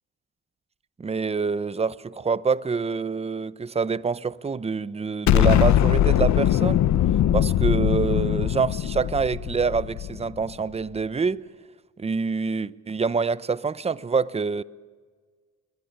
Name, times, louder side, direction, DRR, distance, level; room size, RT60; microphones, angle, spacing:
voice 1, 1.0-6.8 7.3-11.4 12.0-14.6, right 5 dB, 20° right, 0.7 m, -26 dB
Explosion, 5.3-10.4, left 11 dB, 65° left, 1.0 m, -21 dB
22.5 x 20.5 x 8.8 m
cardioid pair, 90°, 30 cm